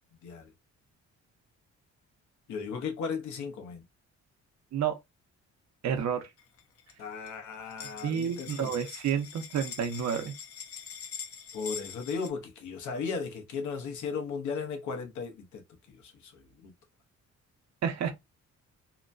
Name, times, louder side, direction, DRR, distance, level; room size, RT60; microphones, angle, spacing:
voice 1, 2.5-3.8 7.0-8.7 11.5-15.6 15.9-16.7, left 5 dB, 75° left, 1.0 m, -36 dB
voice 2, 5.8-6.3 8.0-10.3 17.8-18.1, right 8 dB, 60° right, 0.8 m, -30 dB
sound 1, 6.4-6.9 7.2-7.3 7.5-12.3, left 7 dB, 50° left, 0.7 m, -43 dB
3.0 x 2.2 x 2.5 m
cardioid pair, 90°, 30 cm